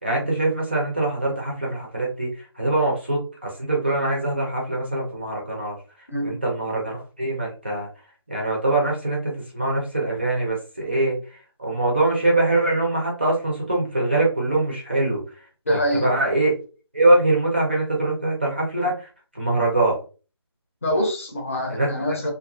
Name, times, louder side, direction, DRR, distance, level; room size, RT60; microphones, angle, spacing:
voice 1, 0.0-5.8 6.2-7.9 8.3-15.2 15.7-16.5 16.9-19.1 19.3-20.0 21.7-21.9, right 2 dB, 25° right, -2 dB, 0.5 m, -23 dB
voice 2, 15.7-16.1 20.8-22.3, equal, 30° left, 1 dB, 0.7 m, -24 dB
2.4 x 2.4 x 2.3 m, 0.35 s
figure-of-eight pair, 165°, 15 cm